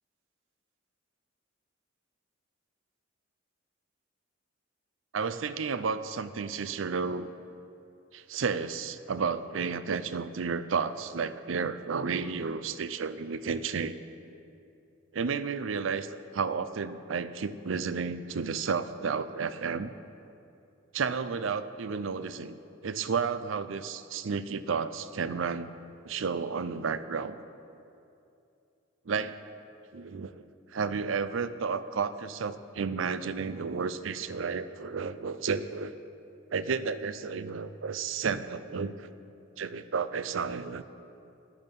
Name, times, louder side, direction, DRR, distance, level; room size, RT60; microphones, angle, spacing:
voice 1, 5.1-7.3 8.1-14.0 15.1-19.9 20.9-25.7 26.0-27.4 29.1-29.4 29.9-30.5 30.7-35.9 36.5-39.1 39.6-40.8, right 5 dB, 70° right, 13 dB, 0.5 m, -32 dB
14.0 x 10.5 x 5.4 m, 2.7 s
head